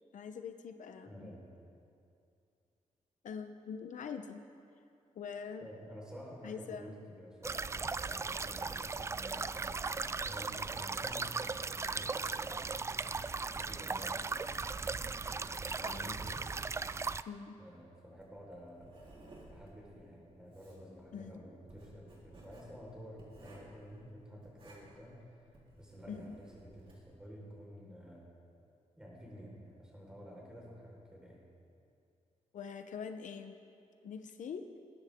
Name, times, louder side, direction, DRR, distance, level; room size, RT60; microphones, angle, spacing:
voice 1, 0.1-1.3 3.2-4.4 5.1-5.7 6.4-7.0 15.8-16.2 17.3-17.5 21.1-21.3 26.1-26.2 32.5-33.5 34.0-34.7, left 6 dB, 80° left, 7 dB, 0.9 m, -43 dB
voice 2, 1.0-1.5 5.6-9.8 10.2-13.2 13.5-14.3 15.3-16.5 17.6-19.1 19.5-25.5 25.8-28.3 29.0-31.4, equal, 5° right, -4 dB, 4.6 m, -51 dB
sound 1, 7.4-17.2, right 4 dB, 20° right, 0.3 m, -37 dB
Writing, 18.2-27.1, right 1 dB, 45° right, 4.0 m, -58 dB
21.0 x 17.5 x 3.7 m, 2.5 s
wide cardioid pair, 135°, 13 cm